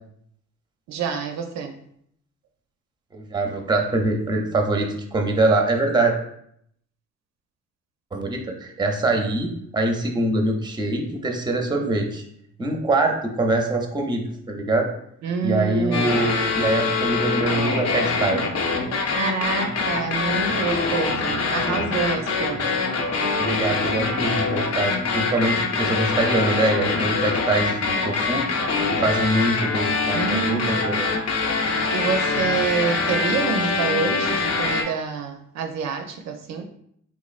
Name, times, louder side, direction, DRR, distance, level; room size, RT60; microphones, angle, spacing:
voice 1, 0.9-1.8 15.2-16.2 19.1-22.8 28.8-29.0 30.1-31.1 31.9-36.6, right 5 dB, 65° right, 5 dB, 0.5 m, -27 dB
voice 2, 3.1-6.1 8.1-12.2 12.6-14.2 14.5-14.9 15.4-18.4 23.4-28.7 29.0-31.1, right 2 dB, 15° right, 3 dB, 0.6 m, -23 dB
sound 1, 15.9-34.8, left 4 dB, 55° left, 0.7 m, -24 dB
3.5 x 3.0 x 2.4 m, 0.70 s
cardioid pair, 90°, 30 cm